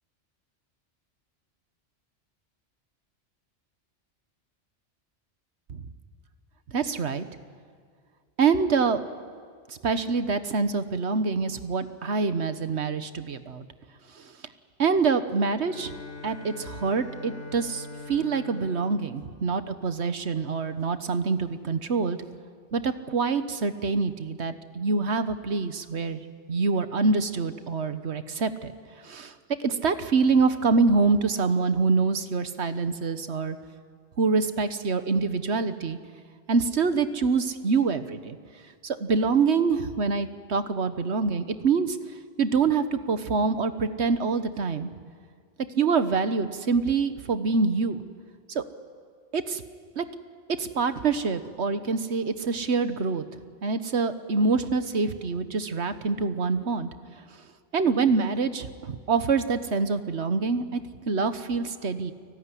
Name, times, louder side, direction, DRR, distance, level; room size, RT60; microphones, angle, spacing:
voice 1, 6.7-7.2 8.4-9.0 9.7-13.6 14.2-14.3 14.8-15.9 16.2-22.2 22.7-26.2 26.5-28.7 29.0-29.3 29.6-33.6 34.2-36.0 36.5-38.4 38.8-42.0 42.4-44.9 45.8-48.0 48.5-48.6 49.3-49.6 50.0-50.1 50.6-53.2 53.6-56.9 57.7-60.8 61.1-62.1, right 4 dB, 70° right, 10 dB, 1.5 m, -25 dB
Bowed string instrument, 15.6-20.4, left 3 dB, 90° left, 3.1 m, -43 dB
29.5 x 19.0 x 9.9 m, 2.1 s
omnidirectional pair, 1.2 m